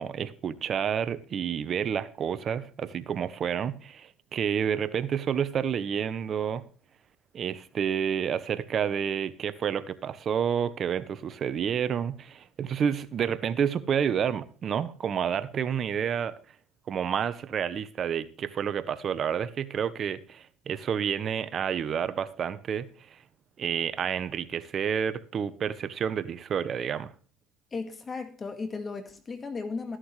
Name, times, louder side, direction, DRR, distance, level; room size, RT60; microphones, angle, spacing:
voice 1, 0.0-6.6 7.3-16.3 16.9-23.2 23.6-27.1, right 8 dB, 45° right, 1.0 m, -29 dB
voice 2, 27.7-30.0, left 4 dB, 30° left, 1.8 m, -35 dB
13.0 x 11.0 x 3.3 m
supercardioid pair, 80°, 0 cm